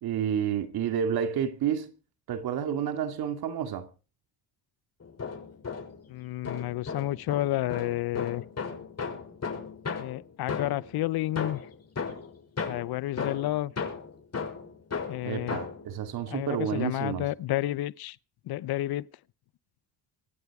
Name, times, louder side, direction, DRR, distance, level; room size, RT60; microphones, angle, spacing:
voice 1, 0.0-1.9 2.3-3.9 15.2-17.3, right 8 dB, 70° right, 2.4 m, -30 dB
sound 1, 5.0-6.1 6.4-11.0 11.4-15.9, left 5 dB, 40° left, 6.3 m, -36 dB
voice 2, 6.1-8.4 10.0-11.6 12.6-13.7 15.1-15.6 16.3-18.2 18.5-19.1, left 15 dB, 70° left, 0.8 m, -30 dB
25.0 x 9.3 x 4.8 m
supercardioid pair, 70°, 39 cm